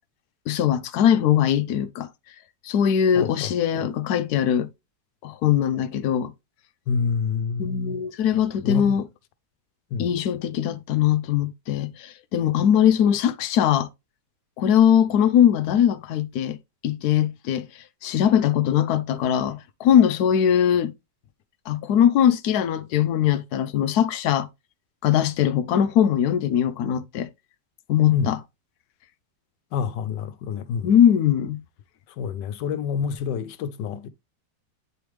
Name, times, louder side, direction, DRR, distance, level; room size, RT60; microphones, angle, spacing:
voice 1, 0.5-2.1 2.6-4.7 5.2-6.3 7.6-9.1 10.0-13.9 14.6-16.6 16.8-17.7 18.0-20.9 21.7-24.5 25.0-27.3 27.9-28.4 30.8-31.6, left 9 dB, 70° left, 1.1 m, -21 dB
voice 2, 3.1-3.9 6.9-8.0 8.6-9.0 9.9-10.1 28.1-28.3 29.7-30.9 32.2-34.1, left 6 dB, 90° left, 1.3 m, -28 dB
9.3 x 3.4 x 3.1 m
omnidirectional pair, 1.8 m